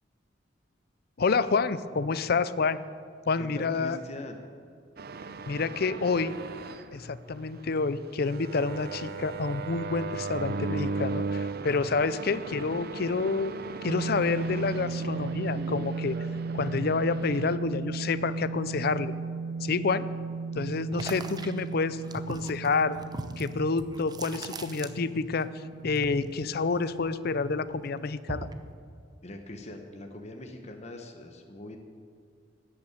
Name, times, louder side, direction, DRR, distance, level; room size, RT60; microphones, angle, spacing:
voice 1, 1.2-2.8 3.3-4.0 5.5-6.4 6.9-13.5 13.8-16.2 16.5-19.1 19.6-20.1 20.6-23.0 23.4-25.5 25.8-28.5, left 4 dB, 55° left, 15 dB, 0.5 m, -28 dB
voice 2, 3.4-4.4 29.2-31.8, left 1 dB, 35° left, 4 dB, 1.1 m, -42 dB
sound 1, 5.0-17.6, right 4 dB, 55° right, 0.7 m, -37 dB
sound 2, 13.9-28.3, right 4 dB, 80° right, 0.4 m, -36 dB
sound 3, 20.9-25.4 25.7-27.3 27.7-28.7, right 2 dB, 20° right, 0.8 m, -40 dB
13.0 x 8.7 x 9.2 m, 2.2 s
head